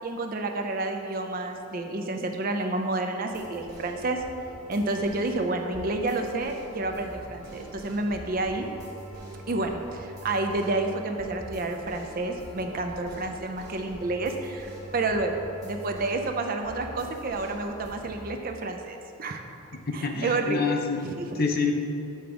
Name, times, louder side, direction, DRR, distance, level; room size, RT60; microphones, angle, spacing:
voice 1, 0.0-4.2 4.7-8.7 9.5-19.4 19.9-20.8 21.2-21.4, right 2 dB, 40° right, 4 dB, 0.4 m, -30 dB
sound 1, 3.3-18.3, right 1 dB, 15° right, 1.2 m, -44 dB
voice 2, 19.9-21.1 21.3-21.7, left 4 dB, 40° left, 3 dB, 0.5 m, -27 dB
7.8 x 3.4 x 4.9 m, 2.7 s
head